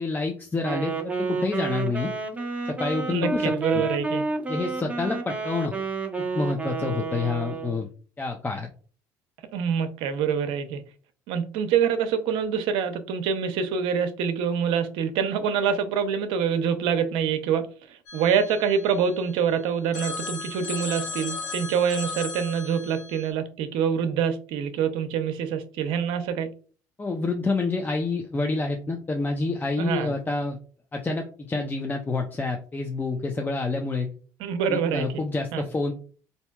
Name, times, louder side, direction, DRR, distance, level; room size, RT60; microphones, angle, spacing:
voice 1, 0.0-2.1 2.6-3.8 4.5-5.8 6.3-7.9 8.2-8.7 27.0-30.6 30.9-34.1 34.7-35.9, left 3 dB, 20° left, 0.6 m, -28 dB
Wind instrument woodwind instrument, 0.6-7.8, right 3 dB, 15° right, 0.8 m, -30 dB
voice 2, 3.1-4.2 9.5-10.8 11.3-26.5 29.8-30.1 34.4-35.2 35.5-35.7, right 7 dB, 70° right, 0.6 m, -26 dB
Telephone, 18.1-19.5 19.9-23.3, left 4 dB, 90° left, 1.0 m, -36 dB
4.3 x 2.8 x 2.3 m
supercardioid pair, 80°, 9 cm